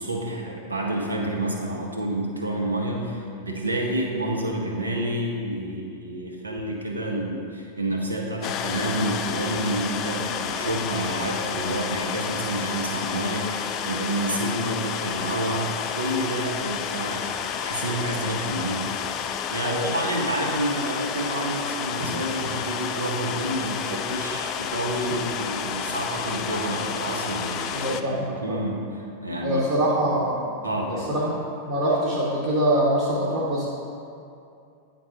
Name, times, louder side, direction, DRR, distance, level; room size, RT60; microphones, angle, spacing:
voice 1, 0.0-17.3 17.6-18.9 19.5-29.6 30.6-31.1, right 1 dB, 80° right, -1 dB, 1.0 m, -29 dB
sound 1, 8.4-28.0, left 7 dB, 35° left, 0.3 m, -30 dB
voice 2, 19.6-20.1 22.0-22.1 27.7-28.6 29.4-30.5 30.9-31.3 31.6-33.7, right 1 dB, 35° right, -6 dB, 1.3 m, -24 dB
9.6 x 3.9 x 3.8 m, 2.5 s
figure-of-eight pair, 90°, 0 cm